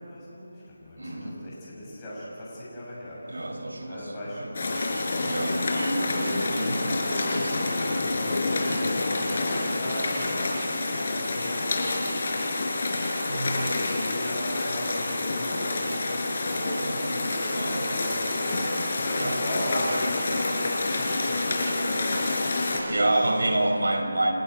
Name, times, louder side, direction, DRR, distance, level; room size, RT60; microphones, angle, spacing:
voice 1, 0.0-5.3 8.3-13.0 13.3-23.4 23.8-23.9, equal, 15° left, -7 dB, 6.6 m, -38 dB
voice 2, 1.0-1.4 3.3-4.1 4.4-4.5 5.3-7.7 13.3-13.5 16.8-17.2 17.5-17.8 19.1-19.4 22.9-24.3, right 1 dB, 75° right, 2 dB, 5.0 m, -28 dB
sound 1, 4.5-22.8, left 2 dB, 50° left, 4.7 m, -28 dB
30.0 x 12.5 x 9.4 m, 2.7 s
figure-of-eight pair, 165°, 0 cm